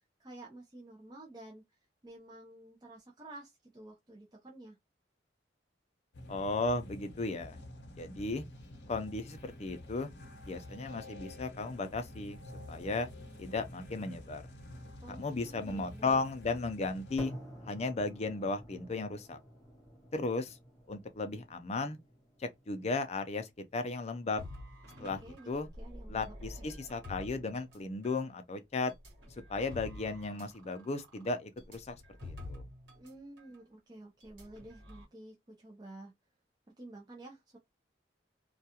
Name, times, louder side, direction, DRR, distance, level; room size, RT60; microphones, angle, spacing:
voice 1, 0.2-1.6 2.0-4.8 15.0-16.2 25.0-25.5 25.8-26.7 32.9-36.1 36.8-37.6, right 1 dB, 25° right, 0.5 m, -51 dB
sound 1, 6.1-17.2, left 1 dB, 80° left, 0.7 m, -49 dB
voice 2, 6.3-7.6 8.0-8.4 8.9-10.1 10.5-12.4 12.7-13.1 13.4-14.4 15.1-17.3 17.6-19.4 20.1-20.6 20.9-22.0 22.4-24.4 25.0-25.7 26.1-28.9 29.5-31.9 32.2-32.6, left 3 dB, 35° left, 0.5 m, -35 dB
sound 2, 17.2-25.2, right 1 dB, 20° left, 0.9 m, -50 dB
sound 3, 24.4-28.2 28.9-33.1 33.4-33.6 34.2-35.0, left 1 dB, 85° right, 1.2 m, -48 dB
2.3 x 2.3 x 2.8 m
head